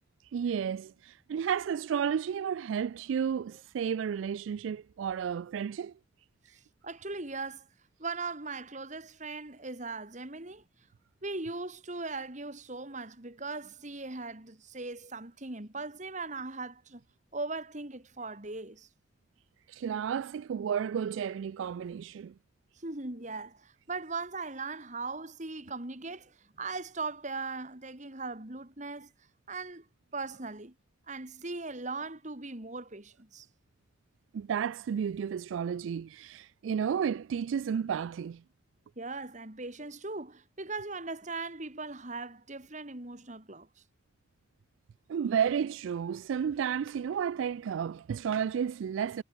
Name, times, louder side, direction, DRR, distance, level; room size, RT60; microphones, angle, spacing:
voice 1, 0.3-5.9 19.7-22.3 34.3-38.4 45.1-49.2, right 7 dB, 85° right, 0.3 m, -32 dB
voice 2, 6.8-7.7 8.0-10.6 11.2-17.0 17.3-18.9 22.8-29.1 29.5-29.9 30.1-30.7 31.1-33.5 39.0-43.7, right 3 dB, 40° right, 2.4 m, -39 dB
head